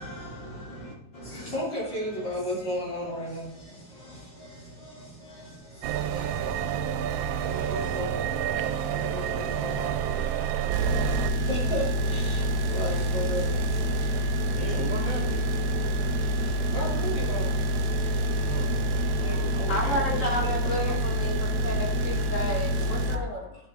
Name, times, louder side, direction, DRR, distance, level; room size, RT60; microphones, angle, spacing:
voice 1, 0.0-14.7 15.8-18.6 19.2-19.4 20.4-20.9, equal, 65° left, -6 dB, 4.4 m, -37 dB
sound 1, 5.8-11.3, right 9 dB, 90° right, 1.3 m, -29 dB
sound 2, 10.7-23.2, equal, 65° right, 1.3 m, -27 dB
voice 2, 14.5-15.5 18.4-20.2, right 1 dB, 25° right, -2 dB, 2.4 m, -37 dB
voice 3, 19.7-23.5, left 1 dB, 45° left, 0 dB, 1.9 m, -31 dB
11.0 x 5.7 x 3.8 m, 0.76 s
omnidirectional pair, 2.1 m